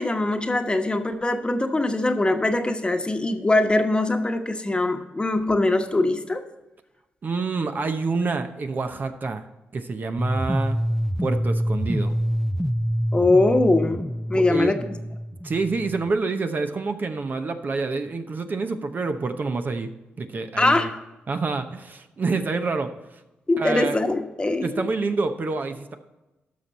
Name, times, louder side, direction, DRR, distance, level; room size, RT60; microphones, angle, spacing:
voice 1, 0.0-6.4 13.1-15.0 20.6-21.0 23.5-24.9, left 2 dB, 25° left, 6 dB, 1.2 m, -22 dB
voice 2, 7.2-9.4 9.7-10.8 11.2-12.1 14.3-14.8 15.4-19.9 20.2-20.9 21.3-22.9 23.6-24.0 24.6-26.0, right 4 dB, 45° right, 7 dB, 0.8 m, -27 dB
sound 1, 10.2-16.2, equal, ahead, 0.5 m, -26 dB
12.5 x 6.1 x 4.2 m, 1.0 s
supercardioid pair, 55°, 4 cm